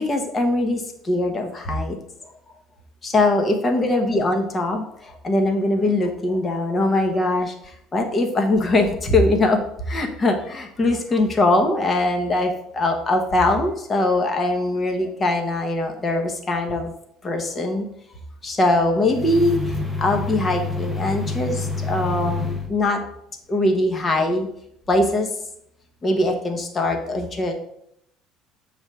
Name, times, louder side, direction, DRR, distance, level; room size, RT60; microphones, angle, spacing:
voice 1, 0.0-2.0 2.2-2.5 3.0-9.6 9.9-16.9 17.2-17.9 18.4-23.0 23.5-24.5 24.9-25.3 26.0-27.5, left 2 dB, 20° left, 4 dB, 1.1 m, -22 dB
sound 1, 19.0-22.7, left 3 dB, 5° left, 0.8 m, -27 dB
7.1 x 3.4 x 6.3 m, 0.73 s
cardioid pair, 150°, 0 cm